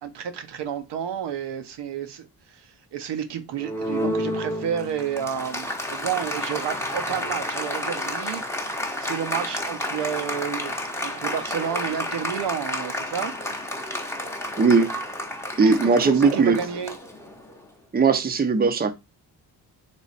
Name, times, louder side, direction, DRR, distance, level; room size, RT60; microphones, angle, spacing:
voice 1, 0.0-10.7 11.0-13.3 15.7-17.0, right 8 dB, 70° right, 0.8 m, -31 dB
Applause, 3.6-17.6, left 1 dB, 5° left, 0.8 m, -31 dB
voice 2, 14.6-14.9 15.6-16.6 17.9-18.9, right 4 dB, 20° right, 0.6 m, -18 dB
3.3 x 3.1 x 4.1 m
cardioid pair, 85°, 42 cm